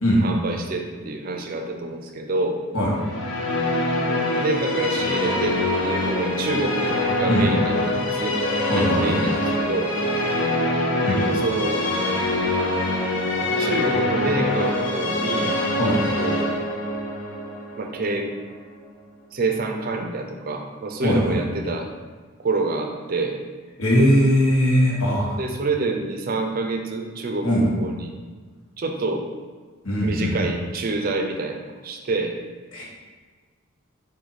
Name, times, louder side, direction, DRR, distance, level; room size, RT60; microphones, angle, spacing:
voice 1, 0.2-2.6 3.9-8.4 8.7-9.9 11.0-11.9 13.6-15.5 16.2-16.5 17.8-18.3 19.3-21.9 22.4-23.4 25.3-28.1 28.8-29.3 30.0-32.4, right 2 dB, 45° right, 4 dB, 0.5 m, -27 dB
sound 1, 2.9-19.0, left 1 dB, 60° left, 0.7 m, -24 dB
voice 2, 8.7-9.2 11.0-11.2 15.8-16.0 21.0-21.4 23.8-25.3 27.4-27.7 29.8-30.3 32.7-32.8, equal, 85° left, -5 dB, 1.3 m, -19 dB
4.8 x 2.7 x 4.0 m, 1.5 s
head